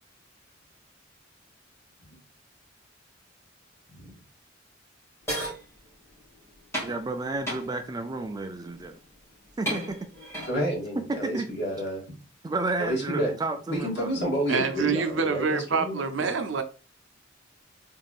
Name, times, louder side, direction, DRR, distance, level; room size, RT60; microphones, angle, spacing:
sound 1, 5.3-5.6 6.7-7.0 7.5-7.7 8.8-9.0 9.7-10.6, equal, 15° left, 2.1 m, -32 dB
voice 1, 6.8-8.9 9.6-10.0 11.1-11.5 12.4-14.1, right 2 dB, 20° right, 0.4 m, -31 dB
voice 2, 10.5-12.0 12.8-13.3 13.7-16.3, equal, 60° left, 2.1 m, -30 dB
voice 3, 14.5-16.6, right 5 dB, 70° right, 0.6 m, -26 dB
3.8 x 3.7 x 2.4 m
head